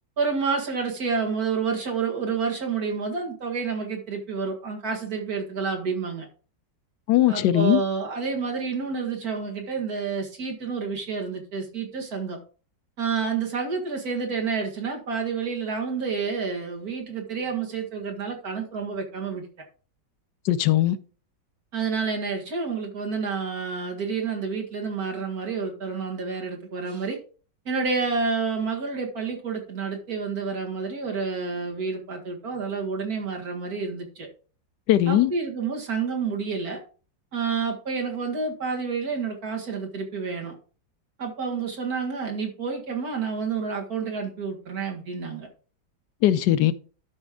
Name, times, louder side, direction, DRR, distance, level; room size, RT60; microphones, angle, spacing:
voice 1, 0.2-6.3 7.3-12.4 13.0-19.4 21.7-27.2 27.7-34.3 35.1-36.8 37.3-40.5 41.2-45.5, right 5 dB, 60° right, 2.2 m, -29 dB
voice 2, 7.1-7.8 20.4-21.0 34.9-35.3 46.2-46.7, left 13 dB, 85° left, 1.3 m, -19 dB
12.5 x 5.2 x 3.6 m
omnidirectional pair, 1.9 m